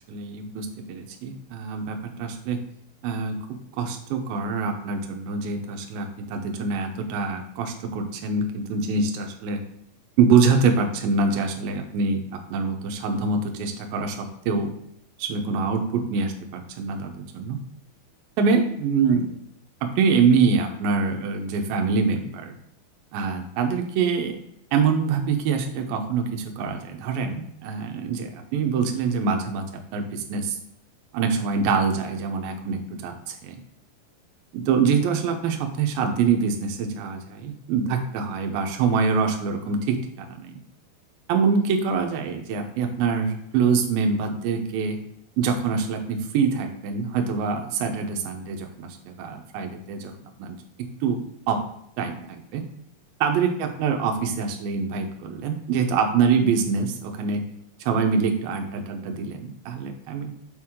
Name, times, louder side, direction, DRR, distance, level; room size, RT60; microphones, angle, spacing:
voice 1, 0.1-2.6 3.0-9.6 10.2-14.7 15.2-17.6 18.4-19.3 19.8-22.5 23.1-24.4 24.7-30.6 31.1-33.1 33.4-33.5 34.5-40.6 41.3-45.0 45.4-50.1 50.4-51.2 51.5-51.6 52.0-52.6 53.2-57.4 57.9-60.3, right 5 dB, 75° right, 4 dB, 2.5 m, -25 dB
7.1 x 4.7 x 3.6 m, 0.74 s
omnidirectional pair, 4.4 m